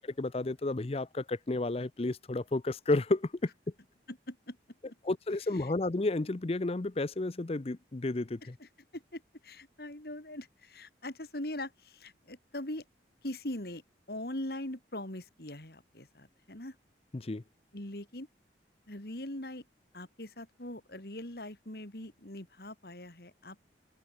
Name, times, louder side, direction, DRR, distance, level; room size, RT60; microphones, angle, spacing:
voice 1, 0.0-3.5 5.0-8.6 17.1-17.4, left 2 dB, 35° left, 0.6 m, -32 dB
voice 2, 4.1-4.6 8.4-12.8 13.2-13.8 14.1-16.8 17.7-18.3 18.9-19.6 19.9-23.6, left 1 dB, 60° left, 3.4 m, -41 dB
head